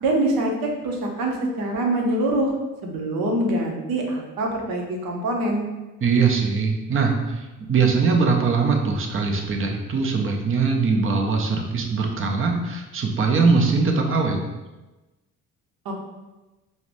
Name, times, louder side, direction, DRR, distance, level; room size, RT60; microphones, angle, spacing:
voice 1, 0.0-2.5 2.8-5.6 15.8-15.9, right 1 dB, 65° right, 0 dB, 0.8 m, -24 dB
voice 2, 6.0-14.4, right 4 dB, 35° right, 2 dB, 0.6 m, -21 dB
4.6 x 2.1 x 2.6 m, 1.1 s
cardioid pair, 75°, 38 cm